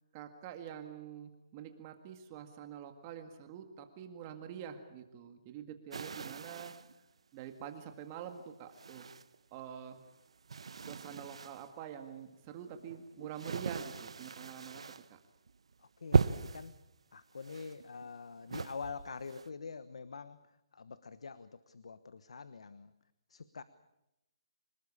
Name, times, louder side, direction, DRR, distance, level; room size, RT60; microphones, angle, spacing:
voice 1, 0.1-6.8 7.3-9.1 9.5-10.0 10.8-14.8 15.1-15.2, right 9 dB, 25° right, 6 dB, 1.9 m, -46 dB
sound 1, 5.9-7.0 7.6-7.7 8.7-9.6 9.9-11.7 12.4-15.1 15.5-15.7 16.1-16.7 17.4-18.2 18.5-19.5, right 5 dB, 75° right, 1.2 m, -37 dB
voice 2, 15.8-16.8 17.1-20.4 20.7-22.9 23.3-23.6, left 5 dB, 80° left, 14 dB, 1.2 m, -45 dB
26.5 x 19.5 x 8.6 m, 0.90 s
hypercardioid pair, 165°, 3 cm